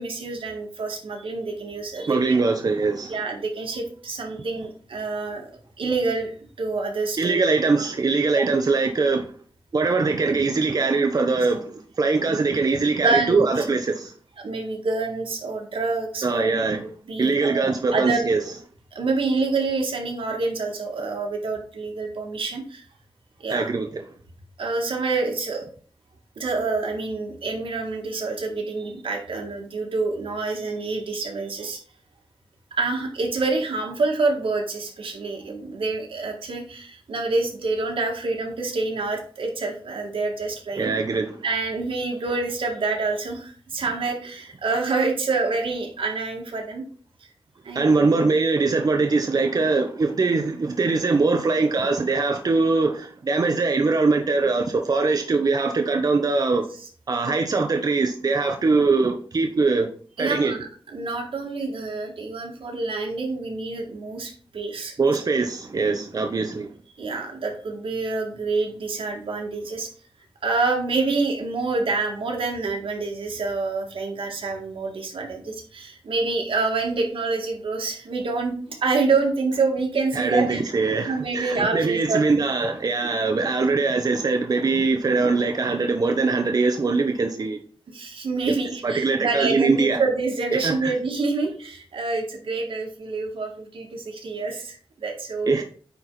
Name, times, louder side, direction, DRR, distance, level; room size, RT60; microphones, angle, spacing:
voice 1, 0.0-2.4 3.1-5.5 5.8-6.3 6.6-7.4 8.3-8.5 12.3-12.6 13.0-13.5 14.4-16.8 17.1-18.3 18.9-22.8 23.4-23.7 24.6-25.6 26.4-31.8 32.8-40.9 41.4-46.8 47.6-48.1 60.2-64.9 65.7-65.9 67.0-69.9 70.4-80.6 81.1-82.2 83.0-83.1 87.9-95.5, right 3 dB, 90° right, 2.2 m, -27 dB
voice 2, 2.1-3.2 7.2-9.3 9.7-14.1 16.2-16.8 17.2-18.4 23.5-24.0 40.8-41.4 47.7-56.6 57.1-59.9 60.2-60.5 65.0-66.7 80.1-87.6 88.8-90.0 90.5-90.9 95.5-95.6, right 3 dB, 45° right, 0.9 m, -22 dB
9.4 x 4.5 x 4.1 m
wide cardioid pair, 130°, 9 cm